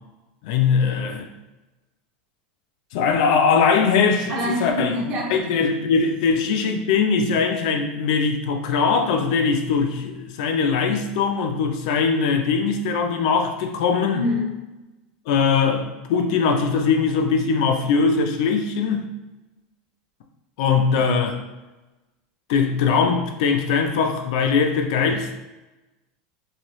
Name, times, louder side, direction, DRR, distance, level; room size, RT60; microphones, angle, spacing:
voice 1, 0.4-1.3 2.9-4.9 5.3-14.3 15.3-19.1 20.6-21.4 22.5-25.3, left 5 dB, 55° left, 4 dB, 0.4 m, -21 dB
voice 2, 4.3-5.4 14.1-14.7, left 1 dB, 30° right, -1 dB, 0.7 m, -25 dB
3.1 x 2.6 x 3.0 m, 1.1 s
supercardioid pair, 175°, 4 cm